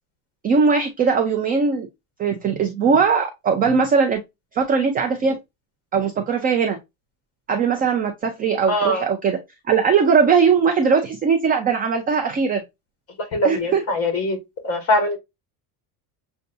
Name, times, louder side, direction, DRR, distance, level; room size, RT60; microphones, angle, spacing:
voice 1, 0.4-1.9 2.2-4.2 4.5-5.4 5.9-6.8 7.5-9.4 9.7-12.6 13.4-13.8, right 5 dB, 20° right, 0.3 m, -19 dB
voice 2, 8.7-9.0 13.3-14.4 14.6-15.2, left 1 dB, 30° left, 1.7 m, -21 dB
6.5 x 2.3 x 2.6 m
cardioid pair, 150°, 47 cm